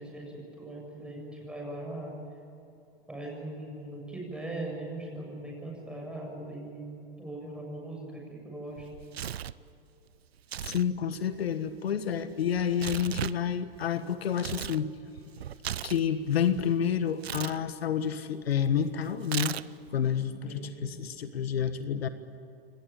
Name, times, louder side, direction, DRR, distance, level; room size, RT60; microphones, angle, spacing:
voice 1, 0.0-2.2 3.1-8.9 20.4-20.9, right 2 dB, 5° right, -1 dB, 7.3 m, -40 dB
Tearing, 8.8-9.6 10.4-10.9 11.1-14.8 15.2-16.7 17.2-17.6 19.2-19.9, right 10 dB, 90° right, 0.8 m, -37 dB
voice 2, 10.6-14.9 15.8-19.6 19.9-22.1, left 8 dB, 80° left, 10 dB, 1.6 m, -29 dB
24.5 x 19.0 x 8.8 m, 2.7 s
hypercardioid pair, 135°, 30 cm